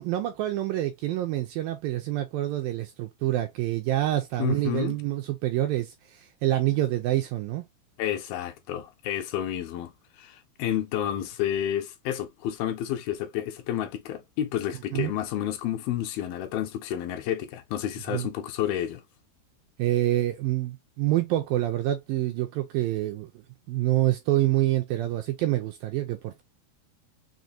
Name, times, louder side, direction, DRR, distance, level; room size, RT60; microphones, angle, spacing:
voice 1, 0.0-7.6 14.9-15.1 18.1-18.3 19.8-23.3 23.7-26.4, right 14 dB, 85° right, 2.0 m, -27 dB
voice 2, 4.4-5.0 8.0-19.0, left 11 dB, 80° left, 2.4 m, -30 dB
6.2 x 2.1 x 2.6 m
omnidirectional pair, 4.5 m